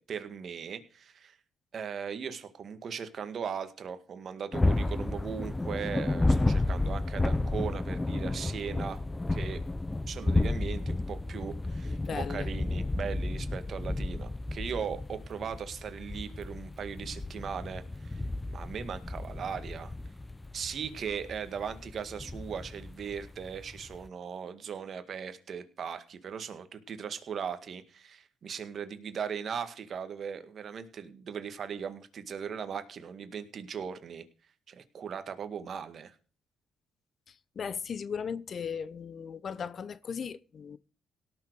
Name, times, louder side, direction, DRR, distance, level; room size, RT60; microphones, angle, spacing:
voice 1, 0.0-1.4 1.7-9.0 9.3-9.6 10.1-19.9 20.5-34.3 34.7-36.2, right 7 dB, 55° right, 1.9 m, -38 dB
sound 1, 4.5-24.1, left 2 dB, 15° left, 0.6 m, -32 dB
voice 2, 11.8-12.5 37.3-40.8, left 6 dB, 50° left, 0.8 m, -37 dB
17.5 x 6.7 x 4.7 m
cardioid pair, 90°, 0 cm